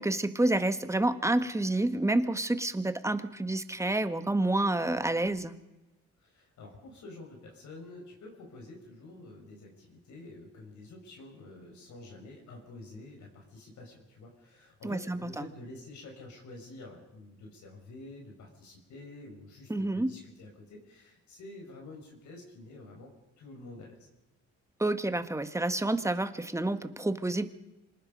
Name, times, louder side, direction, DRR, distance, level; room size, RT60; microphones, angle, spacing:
voice 1, 0.0-5.5 14.8-15.4 19.7-20.1 24.8-27.5, right 2 dB, 10° right, 10 dB, 1.5 m, -29 dB
voice 2, 6.2-24.0, left 2 dB, 70° left, 1 dB, 5.8 m, -48 dB
26.5 x 19.0 x 5.4 m, 1.0 s
cardioid pair, 90°, 30 cm